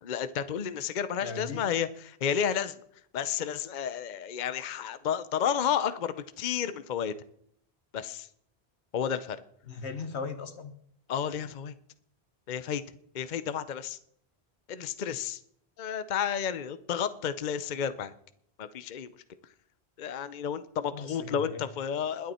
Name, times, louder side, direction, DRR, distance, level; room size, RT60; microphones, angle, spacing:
voice 1, 0.0-2.8 3.1-7.1 7.9-8.3 8.9-9.4 11.1-11.7 12.5-12.8 13.1-14.0 14.7-15.4 15.8-18.1 18.6-19.1 20.0-22.3, left 8 dB, 50° left, 13 dB, 0.8 m, -31 dB
voice 2, 1.2-1.6 9.7-10.7 20.9-21.6, left 4 dB, 80° left, 10 dB, 1.6 m, -38 dB
21.5 x 8.2 x 4.3 m, 0.66 s
omnidirectional pair, 1.1 m